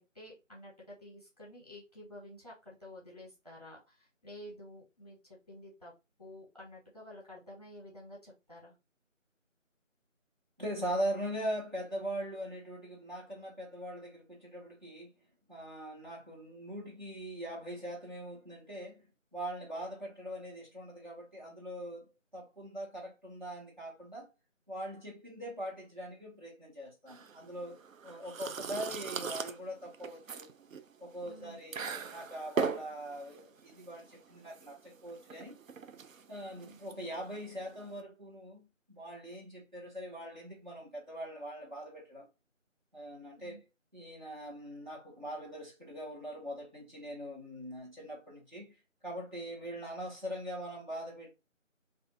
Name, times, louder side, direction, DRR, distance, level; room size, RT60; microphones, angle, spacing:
voice 1, 0.0-5.9 6.2-8.7 31.2-31.6 36.6-36.8 43.3-43.6 49.7-49.8, left 1 dB, 30° left, 1.1 m, -51 dB
voice 2, 10.6-15.1 15.5-19.0 19.3-24.3 24.7-30.5 31.0-35.5 36.3-42.3 42.9-43.6 43.9-48.7 49.0-51.3, equal, 35° right, 1.1 m, -41 dB
sound 1, 27.1-38.0, right 5 dB, 90° right, 0.5 m, -40 dB
2.5 x 2.4 x 3.7 m
figure-of-eight pair, 170°, 39 cm